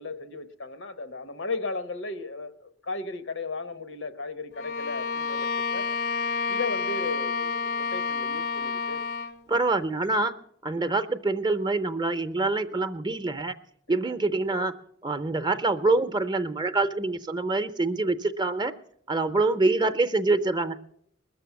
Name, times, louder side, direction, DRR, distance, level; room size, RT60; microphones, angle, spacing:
voice 1, 0.0-5.9 6.5-9.0 14.0-14.1, left 3 dB, 90° left, 1.0 m, -35 dB
Bowed string instrument, 4.5-9.4, left 5 dB, 55° left, 0.5 m, -29 dB
voice 2, 9.5-10.4 10.6-13.5 13.9-14.8 15.0-18.7 19.1-20.8, right 3 dB, 20° right, 0.6 m, -25 dB
20.5 x 7.0 x 7.0 m
head